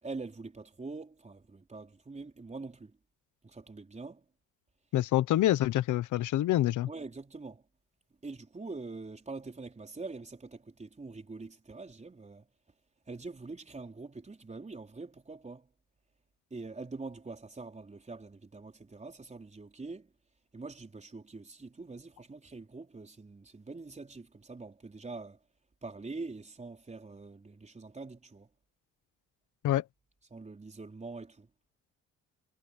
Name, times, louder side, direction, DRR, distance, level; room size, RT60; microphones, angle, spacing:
voice 1, 0.0-2.9 3.4-4.2 6.9-7.6 8.2-12.5 13.1-15.7 16.5-20.1 20.5-25.4 25.8-28.5 30.3-31.5, right 3 dB, 25° right, 4.3 m, -44 dB
voice 2, 4.9-6.9 29.6-29.8, left 14 dB, 80° left, 1.1 m, -26 dB
cardioid pair, 90°, 30 cm